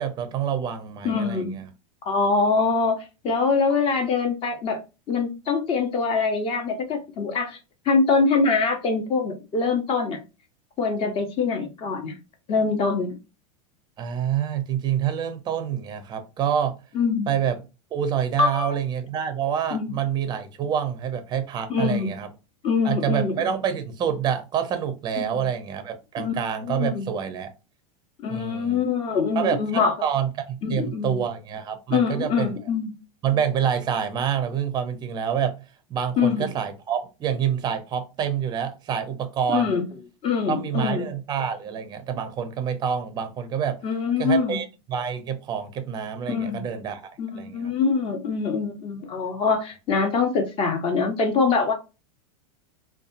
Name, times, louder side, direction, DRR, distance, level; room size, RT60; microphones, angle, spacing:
voice 1, 0.0-1.7 14.0-16.7 17.3-17.6 17.9-22.3 22.8-27.5 28.3-28.8 29.4-32.6 33.2-35.6 35.9-39.7 40.5-43.8 44.2-47.6, right 8 dB, 25° right, 0.5 m, -27 dB
voice 2, 1.0-1.6 2.0-4.8 5.1-7.6 7.9-10.2 10.8-12.2 12.5-13.2 16.9-17.3 18.4-18.8 19.7-20.0 21.7-22.1 22.6-23.5 25.2-25.5 26.2-26.3 26.6-27.1 28.2-29.9 30.6-31.2 31.9-32.9 36.2-36.5 39.5-39.9 40.2-41.1 43.8-44.6 46.3-46.6 47.2-51.7, left 4 dB, 30° left, 0.8 m, -24 dB
2.7 x 2.2 x 2.5 m
supercardioid pair, 135°, 18 cm